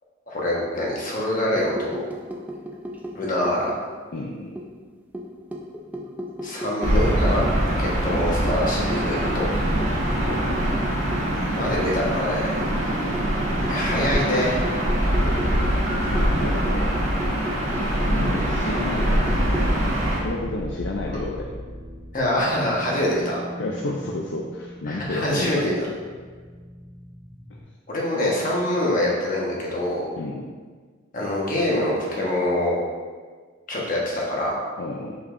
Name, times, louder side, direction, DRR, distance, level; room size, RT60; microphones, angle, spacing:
voice 1, 0.3-2.1 3.1-3.8 6.4-7.4 7.8-9.5 11.5-12.5 13.7-14.6 21.1-21.2 22.1-23.4 24.9-25.7 27.9-30.1 31.1-32.8 33.7-34.6, left 1 dB, 40° left, -4 dB, 1.3 m, -25 dB
sound 1, 1.5-4.2 4.6-7.7 8.0-8.1 8.5-12.0 12.6-19.7, equal, 10° right, 0.4 m, -35 dB
voice 2, 4.1-4.6 10.2-10.6 12.9-13.2 15.2-17.1 18.1-19.5 20.2-21.5 23.2-23.3 23.6-25.7 27.5-27.6 30.2-30.5 34.8-35.2, left 2 dB, 60° left, 0 dB, 0.5 m, -32 dB
Gull seagull / Ocean, 6.8-20.2, right 1 dB, 85° right, 1.8 m, -23 dB
sound 2, 16.0-27.6, equal, 35° right, 1.0 m, -37 dB
6.7 x 5.6 x 2.6 m, 1.5 s
head